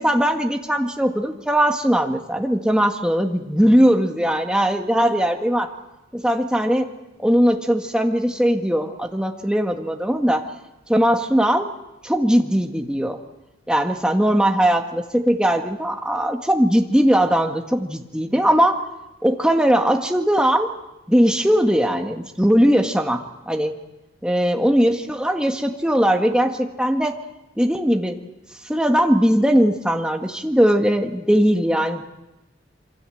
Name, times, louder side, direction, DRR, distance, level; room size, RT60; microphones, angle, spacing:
voice 1, 0.0-5.7 6.1-6.9 7.2-10.4 10.9-11.7 12.0-13.2 13.7-18.9 19.2-20.7 21.1-23.7 24.2-27.2 27.6-28.2 28.7-32.0, equal, 5° right, 4 dB, 1.7 m, -19 dB
27.0 x 24.0 x 7.9 m, 0.98 s
head